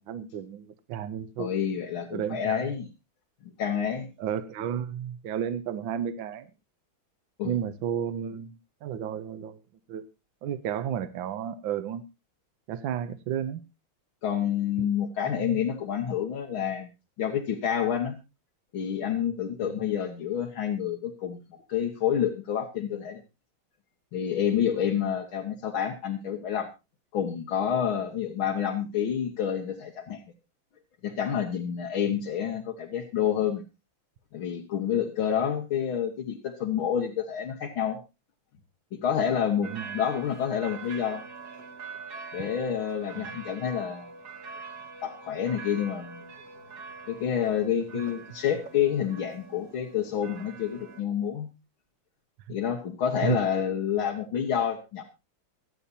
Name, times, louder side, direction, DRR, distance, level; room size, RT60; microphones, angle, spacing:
voice 1, 0.0-1.5 2.1-2.7 4.2-6.5 7.4-9.6 9.9-10.0 10.4-12.0 12.7-13.6 14.8-14.9 15.3-15.6 19.6-19.8 39.6-40.0 43.2-43.3 53.2-53.4, right 9 dB, 75° right, 12 dB, 1.6 m, -32 dB
voice 2, 1.4-2.9 3.4-4.1 7.4-7.6 14.2-16.9 17.2-18.2 18.7-23.2 24.1-26.7 27.1-30.2 31.0-33.6 34.3-38.0 39.0-41.2 42.3-44.1 45.0-46.2 47.1-51.5 52.5-55.0, left 8 dB, 90° left, 1 dB, 2.3 m, -28 dB
sound 1, 39.6-51.0, right 4 dB, 55° right, 1.7 m, -44 dB
25.0 x 8.5 x 2.7 m, 0.27 s
omnidirectional pair, 2.2 m